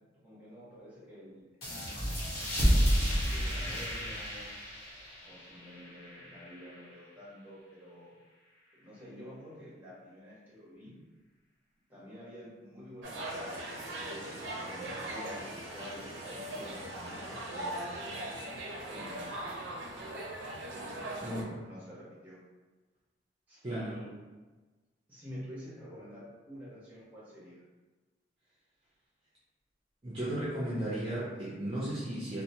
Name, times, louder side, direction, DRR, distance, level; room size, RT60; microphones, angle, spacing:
voice 1, 0.2-1.5 2.4-4.5 5.2-8.1 8.8-10.9 11.9-13.6 14.1-17.9 18.9-19.4 21.0-22.4 23.5-24.1 25.1-27.6, equal, 10° right, -9 dB, 1.0 m, -49 dB
sound 1, 1.6-6.8, equal, 50° left, 1.0 m, -31 dB
sound 2, 13.0-18.7, equal, 20° left, 0.8 m, -51 dB
Casino Ambiance, 13.0-21.4, right 1 dB, 80° right, 0.4 m, -40 dB
voice 2, 21.2-21.6 23.6-24.0 30.0-32.4, right 1 dB, 30° right, -8 dB, 0.5 m, -35 dB
2.7 x 2.0 x 2.7 m, 1.3 s
head